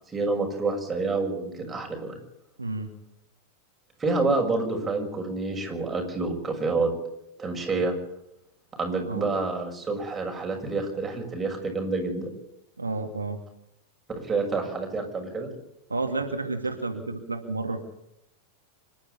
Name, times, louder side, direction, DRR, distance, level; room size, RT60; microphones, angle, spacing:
voice 1, 0.1-2.2 4.0-6.9 7.4-7.9 8.8-12.3 14.2-15.5, right 3 dB, 15° right, 2 dB, 6.4 m, -28 dB
voice 2, 2.6-2.9 9.0-9.3 12.8-13.4 15.9-17.8, right 3 dB, 80° right, 5 dB, 2.2 m, -30 dB
25.5 x 12.0 x 8.5 m, 0.84 s
figure-of-eight pair, 90°, 0 cm